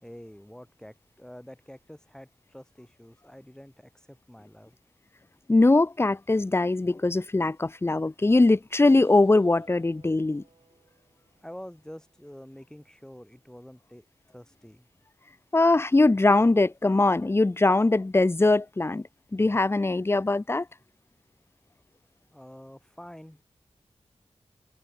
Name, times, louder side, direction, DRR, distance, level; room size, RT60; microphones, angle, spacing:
voice 1, 0.0-4.8 11.4-14.9 22.3-23.4, equal, 5° left, 4.9 m, -47 dB
voice 2, 5.5-10.4 15.5-20.7, left 2 dB, 20° left, 0.7 m, -21 dB
Keyboard (musical), 8.8-12.9, right 4 dB, 60° right, 4.4 m, -57 dB
wide cardioid pair, 120°, 11 cm